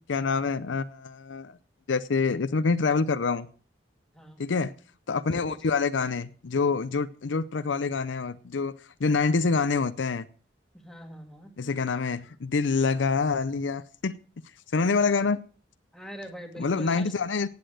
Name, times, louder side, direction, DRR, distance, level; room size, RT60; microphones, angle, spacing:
voice 1, 0.1-1.6 1.9-3.5 4.4-4.7 5.1-10.3 11.6-14.2 14.7-15.4 16.6-17.5, left 4 dB, 90° left, 0.6 m, -26 dB
voice 2, 10.7-11.5 15.9-17.2, equal, 5° left, 2.1 m, -43 dB
15.5 x 8.5 x 6.3 m
head